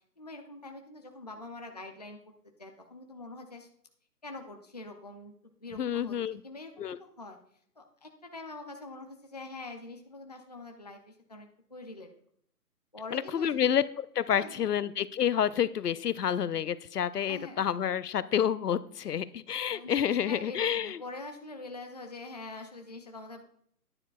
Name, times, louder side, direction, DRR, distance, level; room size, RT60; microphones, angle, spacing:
voice 1, 0.2-2.3 2.6-3.7 4.2-6.2 6.4-7.4 7.8-12.1 12.9-13.6 14.3-14.7 17.3-17.6 19.0-19.1 19.6-23.4, left 2 dB, 30° left, 4 dB, 0.4 m, -44 dB
voice 2, 5.8-6.4 6.8-7.0 13.1-21.0, left 9 dB, 75° left, 16 dB, 0.6 m, -29 dB
10.5 x 9.9 x 2.3 m, 0.66 s
figure-of-eight pair, 150°, 47 cm